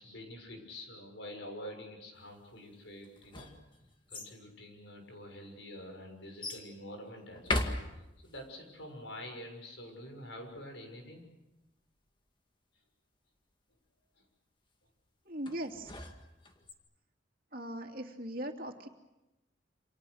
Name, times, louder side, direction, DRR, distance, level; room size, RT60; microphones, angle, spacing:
voice 1, 0.0-3.5 4.1-11.3 14.2-14.3, left 1 dB, 65° left, 4 dB, 6.7 m, -47 dB
sound 1, 3.0-4.3 5.2-5.3 6.4-6.7 7.3-8.4 15.5-16.7, left 2 dB, 25° left, 2.0 m, -37 dB
voice 2, 15.3-15.9 17.5-18.9, right 1 dB, 45° right, 3 dB, 2.9 m, -39 dB
28.5 x 27.5 x 6.6 m, 0.98 s
head